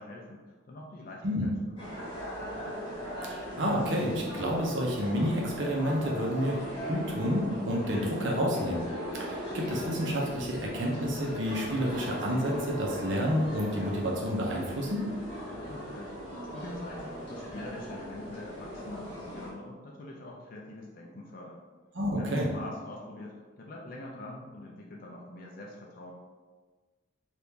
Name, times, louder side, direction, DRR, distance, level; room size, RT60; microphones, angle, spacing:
voice 1, 0.0-2.1 15.7-16.2 16.5-21.6 22.2-26.1, left 1 dB, 45° left, -2 dB, 0.4 m, -44 dB
sound 1, 1.8-19.5, equal, 25° left, 1.0 m, -39 dB
voice 2, 3.6-8.9 9.2-15.1 21.9-22.5, equal, 65° right, -2 dB, 0.7 m, -29 dB
2.9 x 2.5 x 3.5 m, 1.4 s
head